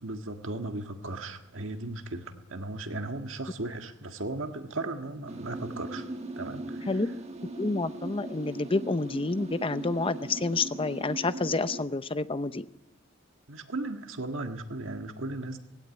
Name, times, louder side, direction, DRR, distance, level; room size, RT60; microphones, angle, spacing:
voice 1, 0.0-6.1 6.4-7.1 13.5-15.6, right 2 dB, 70° right, 1.7 m, -36 dB
sound 1, 5.3-11.8, right 2 dB, 35° right, 1.3 m, -39 dB
voice 2, 7.6-12.7, left 3 dB, 25° left, 0.7 m, -29 dB
18.0 x 16.5 x 9.3 m
head